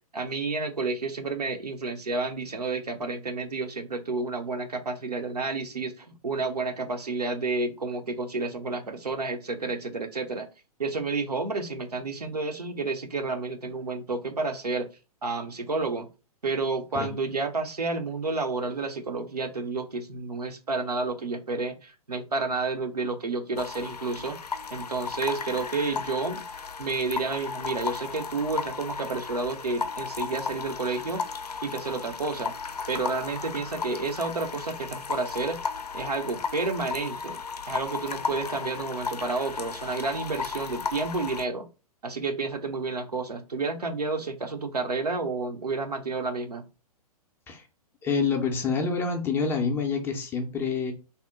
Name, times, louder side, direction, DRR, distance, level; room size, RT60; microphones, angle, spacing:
voice 1, 0.1-10.5 10.8-14.9 15.2-16.1 16.4-24.4 24.7-26.4 26.8-31.2 31.6-32.5 32.9-35.6 35.9-37.4 37.7-41.7 42.0-46.6, right 3 dB, 85° right, 5 dB, 0.7 m, -30 dB
sound 1, 23.6-41.5, left 5 dB, 85° left, 0.4 m, -35 dB
voice 2, 48.0-50.9, left 5 dB, 10° left, 2 dB, 0.4 m, -27 dB
2.8 x 2.0 x 3.4 m, 0.31 s
figure-of-eight pair, 115°, 20 cm